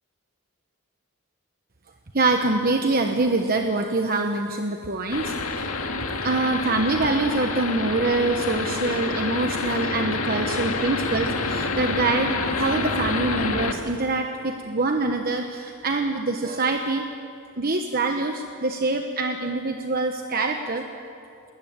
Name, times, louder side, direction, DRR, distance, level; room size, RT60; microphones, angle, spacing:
voice 1, 2.1-5.7 6.2-17.0 17.6-20.8, right 2 dB, 45° right, 4 dB, 1.2 m, -25 dB
sound 1, 5.1-13.7, left 3 dB, 80° left, 1.9 m, -28 dB
22.0 x 19.5 x 8.8 m, 2.5 s
head